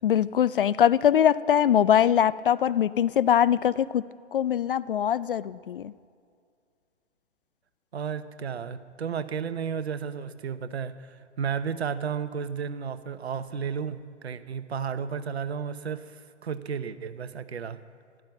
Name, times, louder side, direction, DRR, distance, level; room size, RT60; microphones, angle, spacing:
voice 1, 0.0-4.0 4.3-5.9, left 9 dB, 50° left, 18 dB, 0.4 m, -22 dB
voice 2, 7.9-17.8, right 7 dB, 65° right, 12 dB, 1.0 m, -33 dB
14.0 x 12.5 x 7.5 m, 2.2 s
figure-of-eight pair, 130°, 35 cm